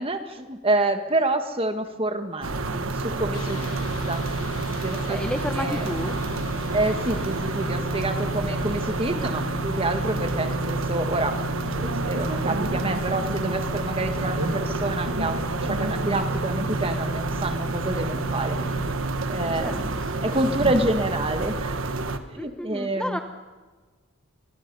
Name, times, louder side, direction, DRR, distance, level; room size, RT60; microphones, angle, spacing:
voice 1, 0.0-4.3 4.6-5.2 5.5-5.9 6.7-11.4 11.7-18.6 19.3-21.7 22.3-23.2, right 2 dB, 25° right, 7 dB, 1.5 m, -28 dB
sound 1, 2.4-22.2, right 3 dB, 70° right, 1.3 m, -28 dB
sound 2, 3.3-18.9, left 2 dB, 80° left, 1.2 m, -36 dB
voice 2, 5.0-6.1 14.2-14.4 14.6-14.7 19.5-20.7 22.3-23.2, equal, 5° left, 6 dB, 0.9 m, -33 dB
25.5 x 20.5 x 5.5 m, 1.4 s
head